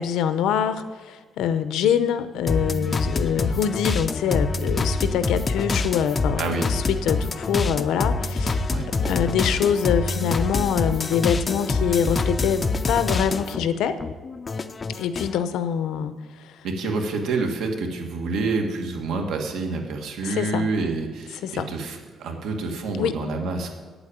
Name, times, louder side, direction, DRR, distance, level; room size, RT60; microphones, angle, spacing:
voice 1, 0.0-8.7 9.0-14.0 14.9-16.5 20.2-20.7 21.4-21.7 23.0-23.2, left 8 dB, 80° left, 12 dB, 0.7 m, -25 dB
sound 1, 2.5-13.7 14.0-15.4, left 3 dB, 20° left, 0.4 m, -26 dB
voice 2, 6.4-6.7 8.7-8.9 16.6-23.7, right 3 dB, 75° right, 3 dB, 1.8 m, -27 dB
8.5 x 8.0 x 8.9 m, 1.4 s
cardioid pair, 180°, 0 cm